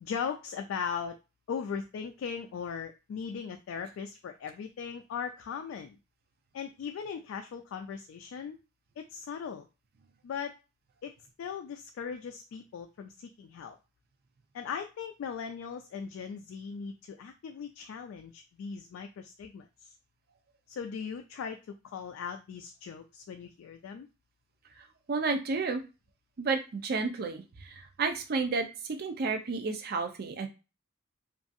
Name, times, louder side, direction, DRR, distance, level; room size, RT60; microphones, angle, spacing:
voice 1, 0.0-1.2 1.5-6.0 6.5-8.6 9.0-9.7 10.2-10.5 11.0-11.1 11.4-13.8 14.5-19.9 20.7-21.6 21.9-24.1, left 6 dB, 70° left, 5 dB, 0.3 m, -38 dB
voice 2, 24.8-25.8 26.4-30.5, right 4 dB, 50° right, 6 dB, 0.5 m, -32 dB
2.6 x 2.3 x 2.5 m, 0.30 s
head